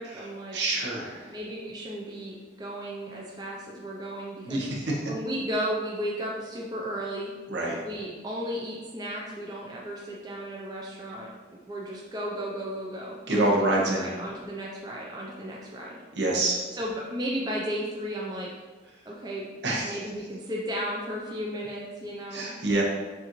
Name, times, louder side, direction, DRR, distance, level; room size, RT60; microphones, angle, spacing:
voice 1, 0.0-0.6 1.3-4.6 5.1-7.3 7.8-11.3 11.7-16.0 16.7-18.5 19.1-19.5 19.8-22.5, equal, 20° right, -4 dB, 0.5 m, -34 dB
voice 2, 0.5-1.3 4.5-4.8 7.5-7.8 13.3-14.1 16.2-16.6 19.6-19.9 22.3-22.8, right 2 dB, 65° right, -2 dB, 0.9 m, -26 dB
6.7 x 2.6 x 3.0 m, 1.3 s
head